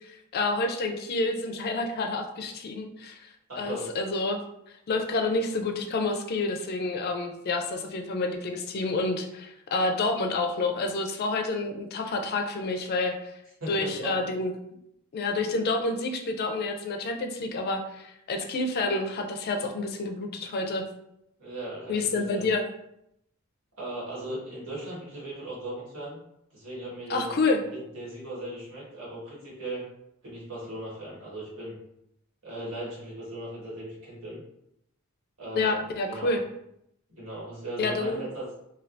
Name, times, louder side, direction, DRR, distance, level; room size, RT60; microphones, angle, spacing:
voice 1, 0.0-3.3 3.6-4.4 4.7-13.3 13.7-14.5 15.1-20.8 21.9-22.6 27.1-27.6 35.6-36.4 37.8-38.3, left 3 dB, 50° left, 4 dB, 0.4 m, -28 dB
voice 2, 3.5-3.9 13.6-14.3 21.4-22.5 23.8-26.2 26.5-27.3 27.7-29.8 30.2-31.8 32.4-34.4 35.4-35.8 36.1-36.3 37.1-38.4, right 1 dB, 75° right, -7 dB, 1.5 m, -38 dB
3.2 x 2.3 x 2.6 m, 0.78 s
head